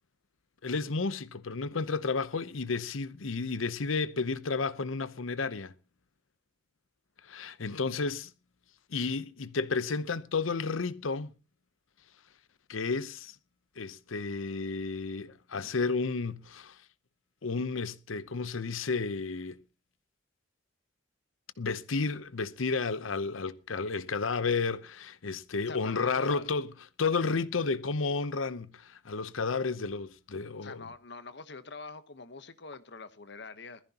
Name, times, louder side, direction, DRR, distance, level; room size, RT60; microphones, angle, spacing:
voice 1, 0.6-5.7 7.2-8.3 8.9-11.3 12.7-13.3 13.8-16.8 17.4-19.6 21.6-30.9, left 4 dB, 90° left, 0.8 m, -32 dB
voice 2, 25.7-26.4 30.6-33.8, left 4 dB, 60° left, 1.0 m, -45 dB
21.0 x 14.5 x 2.9 m
head